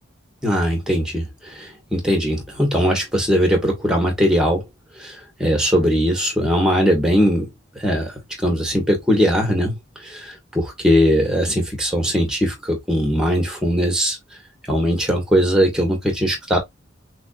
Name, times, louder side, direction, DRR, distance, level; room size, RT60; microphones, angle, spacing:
voice 1, 0.4-1.2 1.6-4.6 5.0-7.5 7.8-8.1 8.4-9.8 10.0-14.2 14.7-16.6, equal, 5° right, 1.9 m, -20 dB
6.0 x 2.8 x 2.6 m
head